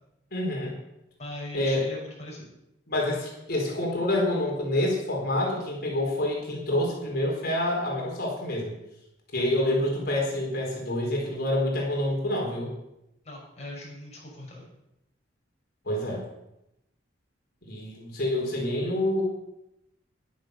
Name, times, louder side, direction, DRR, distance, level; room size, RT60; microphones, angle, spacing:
voice 1, 0.3-0.7 1.5-1.9 2.9-8.7 9.3-12.7 15.8-16.2 17.7-19.2, left 1 dB, 55° left, -2 dB, 4.4 m, -27 dB
voice 2, 1.2-2.5 9.4-9.5 13.2-14.7, left 1 dB, 35° left, -3 dB, 6.0 m, -40 dB
11.5 x 10.5 x 6.7 m, 0.86 s
head